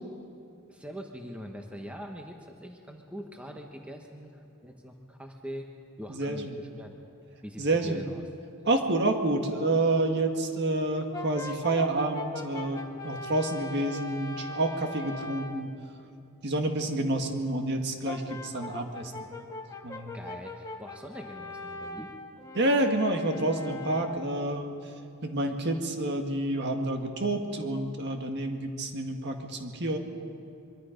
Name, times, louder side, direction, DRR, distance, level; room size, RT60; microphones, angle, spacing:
voice 1, 0.7-5.7 6.0-7.0 7.4-8.2 20.1-22.1, equal, 5° right, 2 dB, 1.2 m, -43 dB
voice 2, 6.1-6.6 7.6-8.1 8.7-15.7 16.4-19.3 19.8-20.2 22.5-24.9 25.2-30.0, right 2 dB, 50° right, 4 dB, 1.8 m, -29 dB
Brass instrument, 11.1-15.7 18.1-24.4, left 2 dB, 15° left, 1.1 m, -41 dB
23.5 x 23.5 x 5.2 m, 2.5 s
head